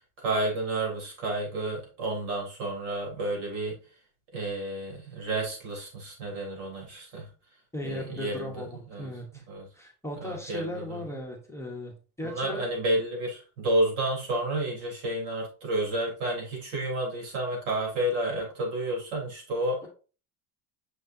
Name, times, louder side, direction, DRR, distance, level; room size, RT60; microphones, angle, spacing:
voice 1, 0.2-3.8 4.3-7.3 7.8-8.6 8.9-9.1 9.5-9.7 10.2-11.0 12.2-19.8, right 1 dB, 80° right, -1 dB, 3.7 m, -30 dB
voice 2, 7.7-9.4 9.7-12.7, left 1 dB, 5° left, 1 dB, 0.9 m, -37 dB
6.3 x 6.1 x 2.7 m, 0.36 s
cardioid pair, 155°, 49 cm